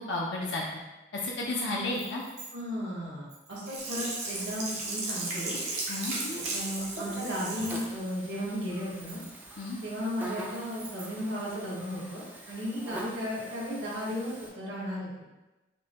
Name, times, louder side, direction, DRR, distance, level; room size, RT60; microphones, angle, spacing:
voice 1, 0.1-0.6 1.1-2.2 5.9-6.1 9.6-9.8, left 2 dB, 70° left, -3 dB, 0.5 m, -32 dB
sound 1, 1.9-2.5 3.3-4.2 4.9-6.4 7.3-8.1 8.7-9.8 10.5-11.3, right 4 dB, 55° right, 1.3 m, -49 dB
voice 2, 2.5-5.5 6.1-9.2 9.8-15.1, equal, 80° right, -6 dB, 1.3 m, -35 dB
Sink (filling or washing), 3.6-7.8 8.3-8.4, right 2 dB, 35° right, 0.7 m, -35 dB
Buzz, 3.8-14.5, right 1 dB, 10° right, 0.3 m, -45 dB
5.2 x 2.2 x 2.9 m, 1.1 s
head